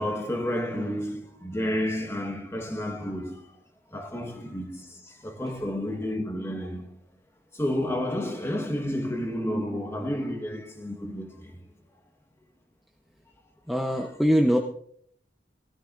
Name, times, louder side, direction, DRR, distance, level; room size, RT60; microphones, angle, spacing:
voice 1, 0.0-3.4 3.9-4.8 5.2-7.0 7.6-11.5, left 1 dB, 15° left, 1.5 m, -30 dB
voice 2, 13.7-14.6, equal, ahead, 0.8 m, -22 dB
19.0 x 13.0 x 2.6 m
head